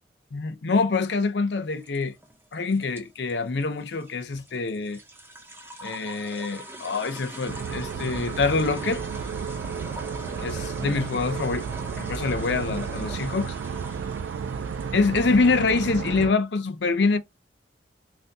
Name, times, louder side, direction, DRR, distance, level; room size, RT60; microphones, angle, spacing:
voice 1, 0.3-2.1 2.5-5.0 5.8-9.0 10.4-11.6 12.1-13.5 14.9-17.2, left 4 dB, 70° left, 0.6 m, -25 dB
sound 1, 1.7-16.2, right 1 dB, 10° right, 0.5 m, -43 dB
sound 2, 7.5-16.3, right 6 dB, 85° right, 0.3 m, -32 dB
3.3 x 2.6 x 2.7 m
head